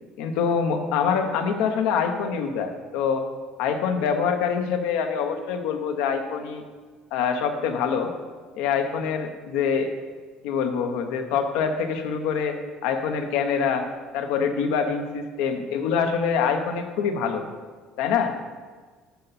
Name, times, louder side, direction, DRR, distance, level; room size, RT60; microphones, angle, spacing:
voice 1, 0.2-3.3 3.6-6.6 7.1-8.1 8.5-9.9 10.4-13.9 14.1-17.4 18.0-18.3, left 6 dB, 80° left, 6 dB, 0.8 m, -25 dB
9.4 x 5.6 x 4.2 m, 1.4 s
supercardioid pair, 90°, 0 cm